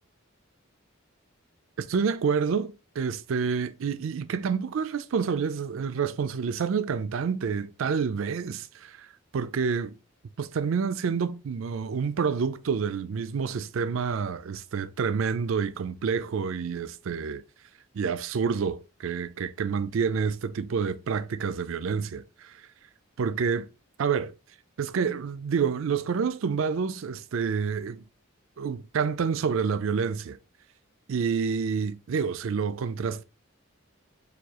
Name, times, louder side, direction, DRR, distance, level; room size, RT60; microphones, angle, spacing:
voice 1, 1.8-9.1 9.3-10.0 10.4-17.4 17.9-22.6 23.2-23.7 24.0-24.3 24.8-28.0 28.6-30.4 31.1-33.2, right 6 dB, 75° right, 0.4 m, -28 dB
6.6 x 2.3 x 2.9 m
head